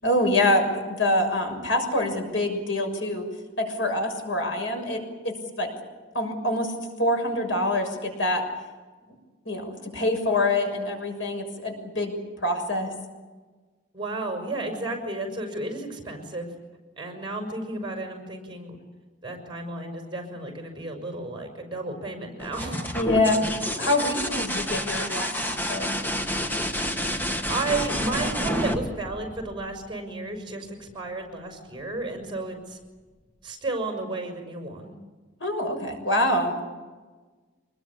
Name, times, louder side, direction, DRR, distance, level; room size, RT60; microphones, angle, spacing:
voice 1, 0.0-3.2 3.6-5.7 6.1-6.7 7.0-8.4 9.4-12.1 12.4-12.9 22.9-23.4 23.8-25.9 35.4-36.5, left 1 dB, 85° left, 4 dB, 6.6 m, -25 dB
voice 2, 13.9-16.5 17.0-18.8 19.2-23.0 27.5-32.8 33.4-34.9, right 2 dB, 25° right, 4 dB, 5.9 m, -32 dB
sound 1, 22.4-30.0 31.8-32.3, equal, 10° left, 1.8 m, -29 dB
26.0 x 21.0 x 8.7 m, 1.3 s
head